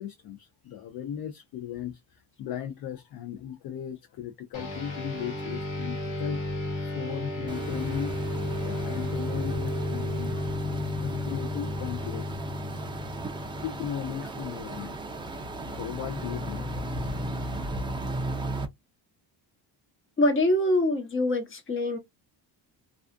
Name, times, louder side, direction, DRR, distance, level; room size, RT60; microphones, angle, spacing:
voice 1, 0.0-6.6 6.9-8.2 8.6-12.4 13.6-15.0 15.7-16.7, left 9 dB, 55° left, 0.5 m, -37 dB
sound 1, 4.5-14.3, left 2 dB, 75° left, 1.0 m, -33 dB
sound 2, 7.5-18.7, right 1 dB, 10° right, 0.3 m, -36 dB
voice 2, 20.2-22.0, left 1 dB, 25° left, 0.8 m, -24 dB
2.4 x 2.3 x 2.3 m
cardioid pair, 135°, 46 cm